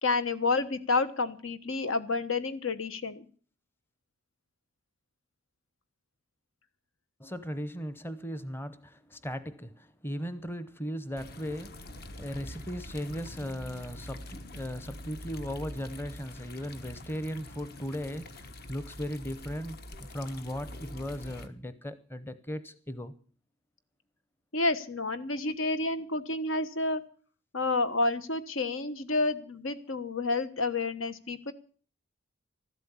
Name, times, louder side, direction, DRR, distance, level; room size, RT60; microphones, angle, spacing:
voice 1, 0.0-3.3 24.5-27.0 27.5-31.5, left 3 dB, 80° left, 1.4 m, -29 dB
voice 2, 7.2-23.1, equal, 10° left, 0.8 m, -37 dB
sound 1, 11.2-21.5, left 1 dB, 50° left, 1.3 m, -45 dB
13.5 x 12.0 x 7.2 m
head